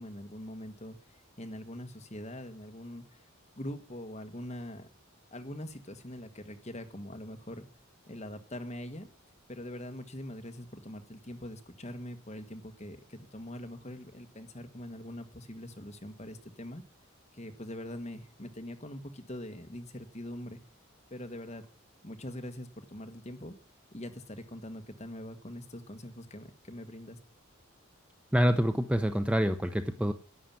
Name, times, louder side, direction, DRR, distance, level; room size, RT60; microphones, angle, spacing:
voice 1, 0.0-3.2 3.6-4.9 5.3-7.7 8.1-9.1 9.5-16.8 17.3-20.6 21.1-21.7 22.0-23.5 23.9-27.2, left 1 dB, 30° left, 7 dB, 1.4 m, -43 dB
voice 2, 28.3-30.1, equal, 5° right, 8 dB, 0.6 m, -26 dB
11.0 x 8.9 x 7.2 m, 0.39 s
head